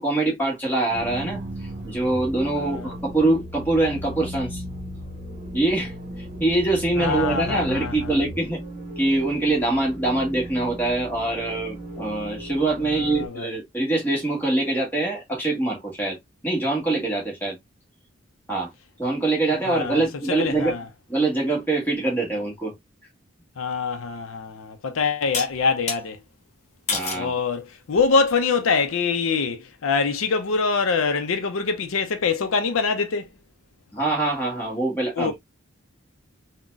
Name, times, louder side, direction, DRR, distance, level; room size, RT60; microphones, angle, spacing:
voice 1, 0.0-1.4 1.8-4.6 5.5-8.6 9.0-16.2 16.4-17.6 18.5-18.7 19.0-20.8 21.1-22.7 26.9-27.3 33.9-35.4, right 2 dB, 10° left, 1.2 m, -24 dB
sound 1, 0.9-13.3, equal, 35° right, 0.8 m, -36 dB
voice 2, 2.6-2.9 7.0-8.1 12.9-13.5 19.7-20.0 20.3-20.8 23.6-26.2 27.1-33.3 35.2-35.4, left 4 dB, 80° left, 0.5 m, -24 dB
sound 2, 24.0-24.1 25.3-26.0 26.9-27.3 27.9-28.3, left 4 dB, 35° left, 0.7 m, -29 dB
3.7 x 2.2 x 2.3 m
head